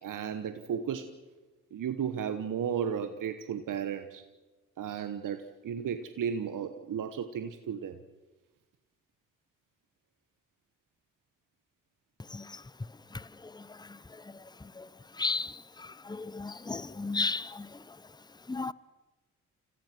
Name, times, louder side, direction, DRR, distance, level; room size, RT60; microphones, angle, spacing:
voice 1, 0.0-1.1 1.7-4.2 4.8-8.0, right 8 dB, 60° right, 1.2 m, -34 dB
voice 2, 15.2-15.5 16.1-17.7 18.5-18.7, left 3 dB, 10° left, 0.8 m, -32 dB
29.5 x 15.0 x 6.1 m
hypercardioid pair, 45°, 35 cm